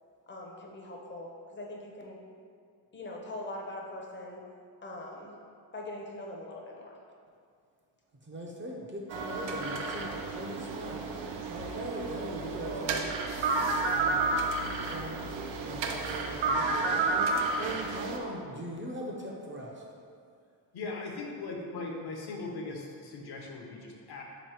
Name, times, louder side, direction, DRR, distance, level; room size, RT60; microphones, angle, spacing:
voice 1, 0.3-2.2 2.9-4.4 4.8-5.4 5.7-7.0, left 1 dB, 25° left, -1 dB, 0.6 m, -42 dB
voice 2, 8.2-13.2 13.4-13.6 13.9-14.3 14.9-19.8, equal, 25° right, -2 dB, 0.5 m, -40 dB
sound 1, 9.1-18.2, right 3 dB, 85° right, 0.6 m, -31 dB
voice 3, 20.7-24.2, left 3 dB, 60° left, 0 dB, 0.7 m, -39 dB
3.5 x 3.0 x 4.7 m, 2.3 s
cardioid pair, 115°, 44 cm